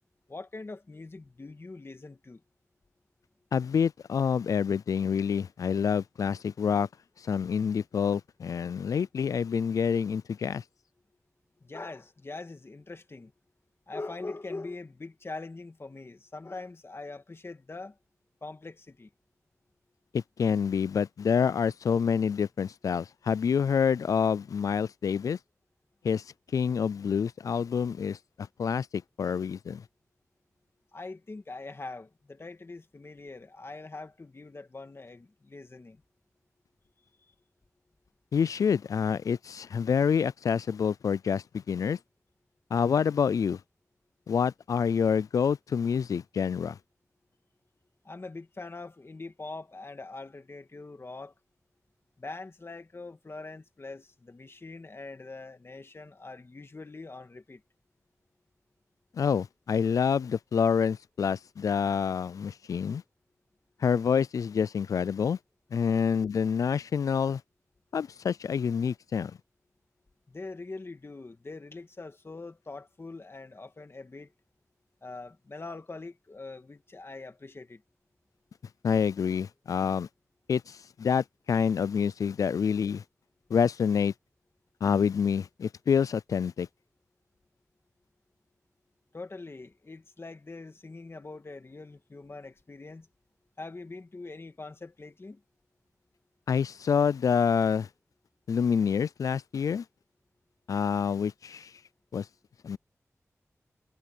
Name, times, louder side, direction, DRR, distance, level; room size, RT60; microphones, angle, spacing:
voice 1, 0.3-2.4 11.6-13.3 13.9-18.0 18.4-19.1 30.9-36.0 48.0-51.3 52.2-57.6 70.3-74.3 75.0-77.8 89.1-93.1 93.6-95.4, left 3 dB, 45° left, 1.8 m, -43 dB
voice 2, 3.5-6.9 7.2-10.6 20.1-25.4 26.0-26.2 26.5-29.8 38.3-42.0 42.7-43.6 44.3-46.8 59.1-63.0 63.8-65.4 65.7-67.4 67.9-69.3 78.8-80.1 80.5-83.0 83.5-84.1 84.8-86.7 96.5-97.9 98.5-99.8 100.7-101.7 102.1-102.3 102.6-102.8, left 7 dB, 85° left, 0.3 m, -27 dB
cardioid pair, 55°, 6 cm